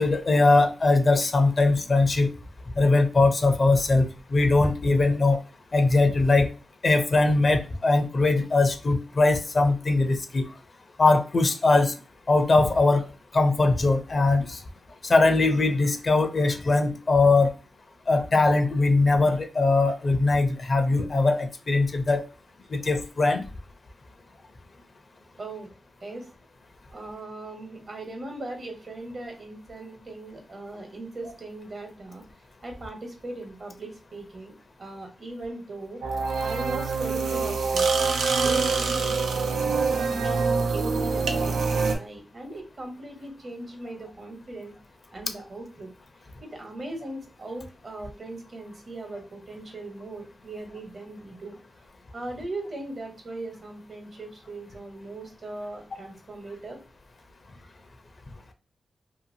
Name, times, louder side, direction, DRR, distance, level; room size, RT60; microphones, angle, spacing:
voice 1, 0.0-2.3 2.8-5.4 5.7-6.5 6.8-10.4 11.0-11.9 12.3-13.0 13.3-14.6 15.0-17.5 18.1-22.2 22.7-23.4, left 3 dB, 50° left, 7 dB, 0.6 m, -21 dB
voice 2, 26.9-32.2 32.6-34.5 34.8-36.0 36.4-37.9 38.4-44.8 45.1-45.9 46.4-51.6 52.1-56.8, right 2 dB, 55° right, 3 dB, 1.1 m, -39 dB
sound 1, 36.0-41.9, right 4 dB, 90° right, 0.4 m, -25 dB
2.8 x 2.4 x 2.7 m, 0.34 s
cardioid pair, 55°, 0 cm